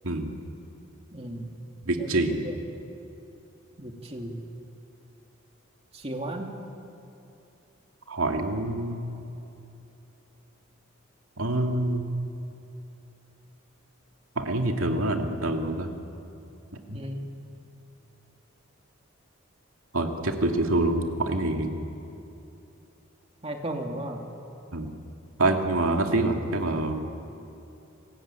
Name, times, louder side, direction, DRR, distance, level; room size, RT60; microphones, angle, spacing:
voice 1, 1.1-1.5 2.0-2.6 3.8-4.4 5.9-6.6 16.9-17.3 23.4-24.2, right 1 dB, 25° right, 2 dB, 2.4 m, -35 dB
voice 2, 1.8-2.4 8.1-9.0 11.4-12.1 14.4-15.9 16.9-17.0 19.9-21.7 24.7-24.9 25.4-27.0, right 2 dB, 75° right, 3 dB, 2.4 m, -26 dB
28.5 x 20.0 x 8.9 m, 2.9 s
head